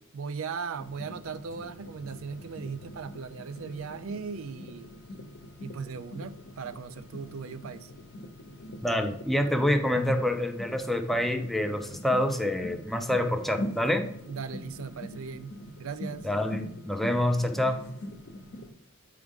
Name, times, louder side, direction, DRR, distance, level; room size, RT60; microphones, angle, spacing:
voice 1, 0.1-4.9 5.6-7.9 14.3-16.3, right 5 dB, 75° right, 0.4 m, -38 dB
sound 1, 0.7-18.7, left 1 dB, 55° left, 0.8 m, -43 dB
voice 2, 8.8-14.1 16.2-17.8, left 1 dB, ahead, 0.5 m, -27 dB
9.0 x 4.7 x 3.7 m
head